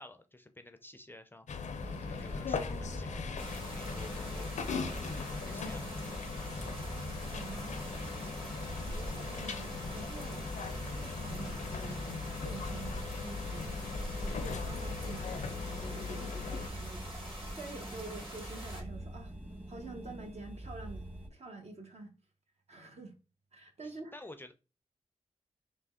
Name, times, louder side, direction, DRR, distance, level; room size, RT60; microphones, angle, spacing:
voice 1, 0.0-6.7 8.8-9.0 23.8-24.5, left 1 dB, 15° left, 0.4 m, -53 dB
sound 1, 1.5-16.7, left 5 dB, 75° left, 0.4 m, -40 dB
sound 2, 1.8-21.3, right 1 dB, 15° right, 0.9 m, -45 dB
sound 3, 3.4-18.8, equal, 40° right, 1.7 m, -45 dB
voice 2, 7.3-7.8 8.7-10.5 10.9-13.7 14.2-19.3 19.7-22.1 22.7-23.1 23.5-24.1, right 3 dB, 60° right, 0.9 m, -47 dB
3.4 x 2.0 x 3.6 m
cardioid pair, 60°, 13 cm